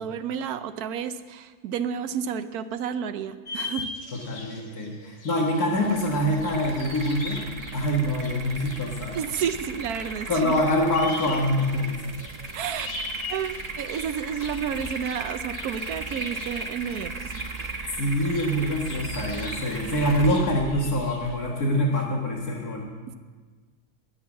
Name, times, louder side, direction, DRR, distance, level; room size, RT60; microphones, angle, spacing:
voice 1, 0.0-3.9 9.1-10.5 12.5-13.0 13.3-17.8 23.1-23.2, right 8 dB, 80° right, 11 dB, 1.2 m, -31 dB
sound 1, 3.5-21.4, left 3 dB, 45° left, 1.7 m, -42 dB
voice 2, 4.1-7.4 7.7-9.2 10.3-12.0 18.0-22.9, equal, 75° left, -2 dB, 2.2 m, -25 dB
sound 2, 5.7-22.1, right 3 dB, 30° right, 0.9 m, -37 dB
21.0 x 7.0 x 7.2 m, 1.5 s
omnidirectional pair, 1.6 m